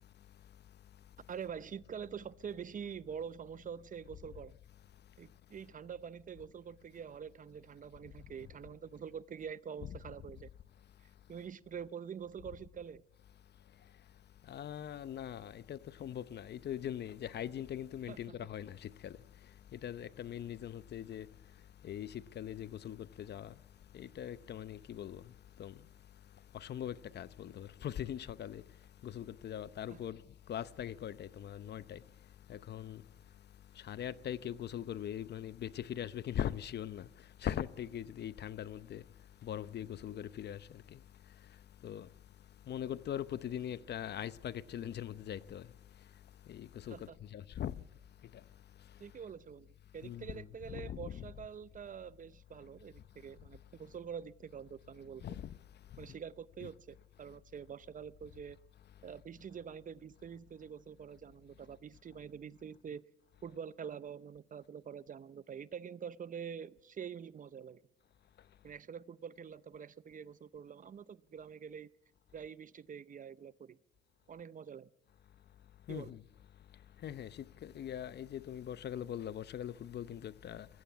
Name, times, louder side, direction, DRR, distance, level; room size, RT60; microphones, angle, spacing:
voice 1, 1.3-4.5 5.2-10.5 11.3-13.0 18.1-18.4 29.9-30.0 46.9-47.2 49.0-55.3 56.0-58.6 59.0-63.0 63.4-67.8 68.6-71.9 72.3-73.8 74.3-74.9 75.9-76.1, right 7 dB, 40° right, 0.7 m, -46 dB
voice 2, 14.5-19.2 19.7-21.3 21.8-23.5 23.9-25.2 25.6-25.7 26.5-28.6 29.0-30.2 30.5-32.0 32.5-33.0 33.8-37.1 37.4-39.0 39.4-40.8 41.8-42.1 42.7-45.7 46.5-47.0 47.3-47.7 50.0-51.3 55.2-55.5 56.6-56.7 75.9-76.2 77.0-80.7, left 10 dB, 55° left, 0.7 m, -41 dB
20.5 x 15.0 x 8.6 m
cardioid pair, 90°, 20 cm